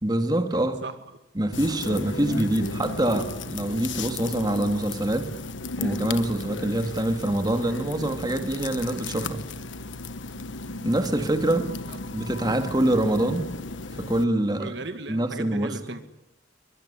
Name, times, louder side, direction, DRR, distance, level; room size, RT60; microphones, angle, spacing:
voice 1, 0.0-0.8 1.4-5.3 5.8-9.4 10.8-11.7 12.1-13.5 14.0-14.7 15.1-15.7, right 1 dB, 20° right, 7 dB, 2.2 m, -25 dB
sound 1, 1.5-14.2, left 3 dB, 75° left, 1.4 m, -35 dB
voice 2, 14.6-16.0, right 2 dB, 60° right, 9 dB, 2.0 m, -36 dB
23.5 x 23.0 x 9.9 m, 0.85 s
head